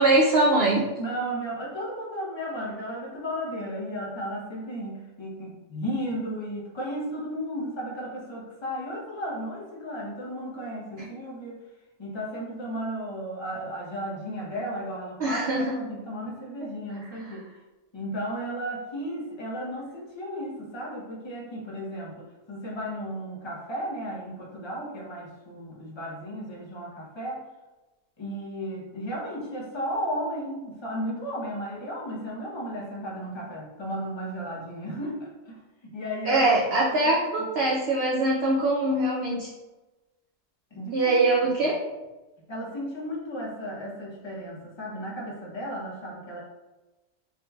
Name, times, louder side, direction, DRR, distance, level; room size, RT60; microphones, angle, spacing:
voice 1, 0.0-0.8 15.2-15.8 36.3-39.5 40.9-41.8, right 2 dB, 65° right, -3 dB, 0.6 m, -22 dB
voice 2, 1.0-11.6 12.0-17.5 17.9-27.4 28.2-36.4 36.8-37.2 37.6-37.7 40.7-41.7 42.5-46.4, equal, 30° left, -4 dB, 0.6 m, -34 dB
3.6 x 2.9 x 2.3 m, 1.1 s
omnidirectional pair, 1.4 m